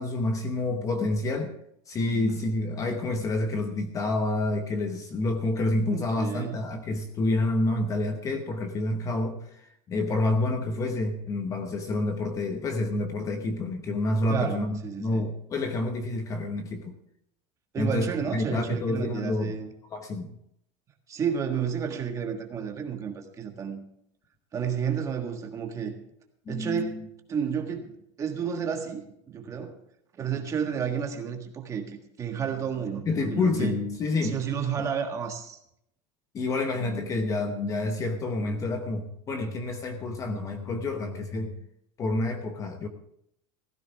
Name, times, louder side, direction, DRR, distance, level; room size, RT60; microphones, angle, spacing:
voice 1, 0.0-1.5 1.9-16.9 17.8-19.6 19.9-20.3 26.5-26.9 33.1-34.4 34.8-34.9 36.3-41.6 42.0-42.9, left 2 dB, 20° left, 6 dB, 0.9 m, -28 dB
voice 2, 5.9-6.6 14.3-15.3 17.7-19.7 21.1-23.8 24.5-25.9 26.5-27.0 27.3-29.7 30.2-33.7 34.2-35.6, right 7 dB, 20° right, 3 dB, 1.5 m, -31 dB
16.5 x 14.5 x 3.5 m, 0.75 s
supercardioid pair, 175°, 16 cm